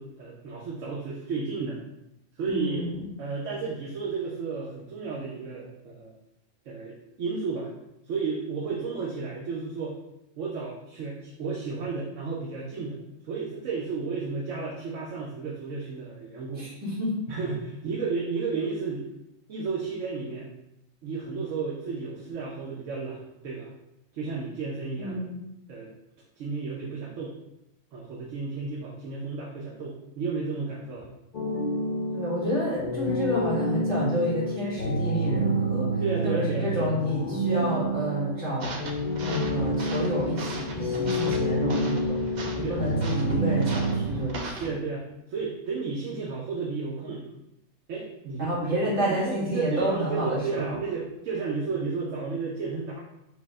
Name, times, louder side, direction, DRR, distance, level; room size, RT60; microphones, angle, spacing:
voice 1, 0.0-1.8 2.4-2.9 3.2-6.1 6.7-7.7 8.0-10.0 10.4-13.0 13.2-16.7 17.3-19.1 19.5-20.5 21.0-23.7 24.1-25.2 25.7-25.9 26.4-27.4 27.9-31.1 36.0-36.8 42.6-42.8 44.6-47.3 47.9-53.0, right 4 dB, 80° right, -3 dB, 1.1 m, -32 dB
voice 2, 2.4-3.1 16.6-17.2 25.0-25.4 32.1-35.9 36.2-38.8 39.2-42.2 42.5-44.7 48.4-50.8, equal, 65° right, -7 dB, 2.0 m, -29 dB
sound 1, 31.3-44.0, right 1 dB, 40° left, 0.8 m, -29 dB
sound 2, 38.6-44.7, right 1 dB, 50° right, 0.6 m, -37 dB
5.1 x 2.1 x 4.7 m, 0.88 s
omnidirectional pair, 1.3 m